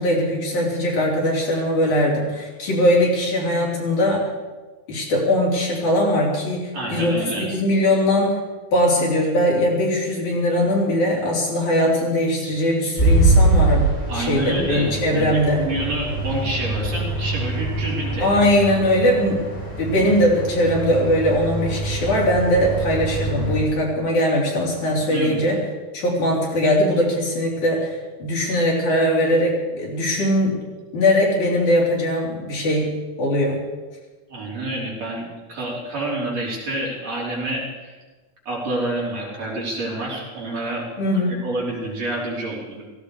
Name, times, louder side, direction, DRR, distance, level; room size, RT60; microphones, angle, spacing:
voice 1, 0.0-4.3 4.9-8.4 8.7-13.9 14.1-15.6 18.2-19.4 19.8-25.6 25.9-30.6 30.9-32.9 33.2-33.6 41.0-41.4, left 1 dB, 55° left, -3 dB, 4.8 m, -20 dB
voice 2, 6.7-7.5 14.1-18.4 24.9-25.4 34.3-38.0 38.5-40.9 41.4-42.8, right 1 dB, 50° right, -4 dB, 4.6 m, -28 dB
sound 1, 13.0-23.6, right 2 dB, 15° left, 7.0 m, -23 dB
17.5 x 16.0 x 4.8 m, 1.3 s
omnidirectional pair, 4.1 m